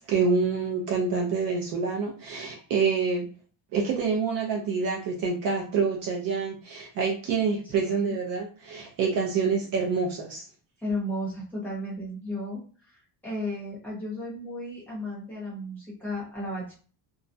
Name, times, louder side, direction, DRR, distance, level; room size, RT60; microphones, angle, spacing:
voice 1, 0.0-3.3 3.7-10.4, right 5 dB, 50° right, 0 dB, 0.5 m, -27 dB
voice 2, 7.8-8.1 10.8-13.0 13.2-16.7, left 1 dB, 5° left, -6 dB, 0.7 m, -34 dB
2.3 x 2.0 x 2.5 m, 0.39 s
cardioid pair, 175°, 46 cm